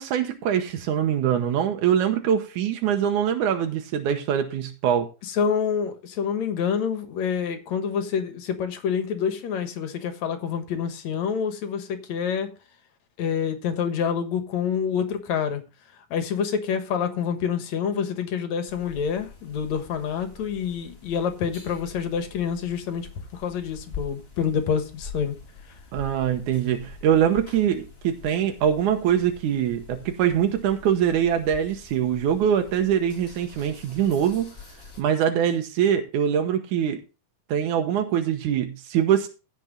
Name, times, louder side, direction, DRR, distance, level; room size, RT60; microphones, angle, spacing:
voice 1, 0.0-5.1 25.9-34.5 35.0-37.0 37.5-39.3, right 9 dB, 85° right, 2.5 m, -23 dB
voice 2, 5.3-12.5 13.2-15.6 16.1-25.4, left 7 dB, 70° left, 2.6 m, -27 dB
sound 1, 18.7-35.0, left 4 dB, 20° left, 2.1 m, -45 dB
16.0 x 6.1 x 3.9 m
omnidirectional pair, 3.4 m